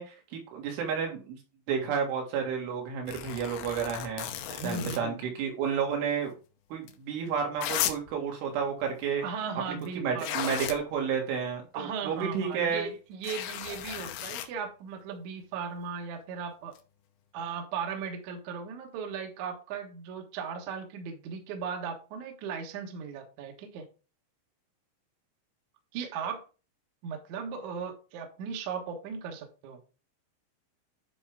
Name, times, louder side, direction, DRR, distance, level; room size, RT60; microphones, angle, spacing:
voice 1, 0.0-1.4 1.7-4.3 4.6-6.4 6.7-9.2 10.0-12.9, right 6 dB, 85° right, 1 dB, 4.3 m, -31 dB
sound 1, 3.1-5.0 6.9-7.0 7.6-8.1 9.8-9.9 10.2-10.8 13.2-14.5 16.8-16.9, left 11 dB, 80° left, 2.5 m, -35 dB
voice 2, 4.5-5.2 9.2-10.4 11.7-16.8 17.3-23.9 25.9-26.4 27.0-29.8, right 6 dB, 70° right, 3 dB, 1.9 m, -37 dB
10.0 x 4.5 x 3.6 m, 0.34 s
omnidirectional pair, 5.4 m